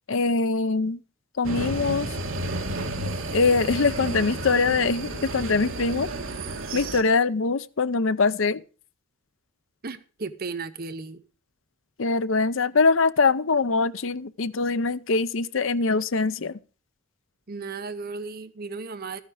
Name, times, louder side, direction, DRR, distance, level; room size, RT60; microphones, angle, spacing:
voice 1, 0.1-1.0 1.4-2.1 3.3-6.1 6.7-8.6 12.0-16.6, left 4 dB, 65° left, 0.6 m, -23 dB
sound 1, 1.4-7.0, right 2 dB, 70° right, 1.9 m, -31 dB
voice 2, 9.8-11.2 17.5-19.2, right 4 dB, 45° right, 0.8 m, -35 dB
13.0 x 9.6 x 4.8 m
head